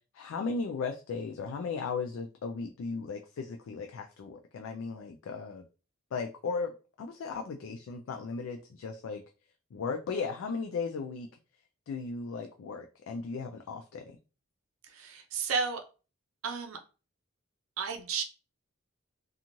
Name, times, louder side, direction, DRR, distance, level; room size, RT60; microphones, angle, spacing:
voice 1, 0.1-5.7 6.1-9.2 9.7-11.3 11.9-14.0, left 4 dB, 80° left, 4 dB, 0.3 m, -36 dB
voice 2, 14.9-15.8 16.4-16.8 17.8-18.2, right 5 dB, 85° right, 5 dB, 0.5 m, -32 dB
2.9 x 2.4 x 2.5 m, 0.34 s
head